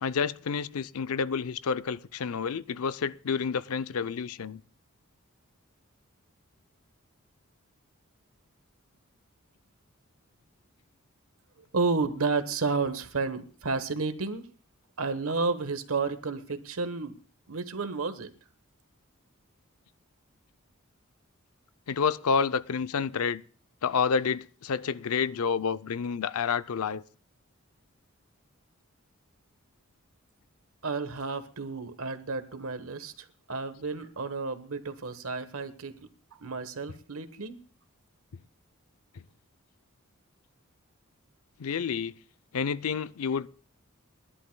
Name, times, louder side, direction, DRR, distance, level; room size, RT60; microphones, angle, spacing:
voice 1, 0.0-4.6 21.9-23.4 23.8-27.0 41.6-42.1 42.5-43.5, left 6 dB, 85° left, 0.5 m, -29 dB
voice 2, 11.7-14.5 15.0-17.1 17.5-18.3 30.8-36.0 36.4-37.6, right 4 dB, 75° right, 1.2 m, -31 dB
30.0 x 11.5 x 2.2 m
head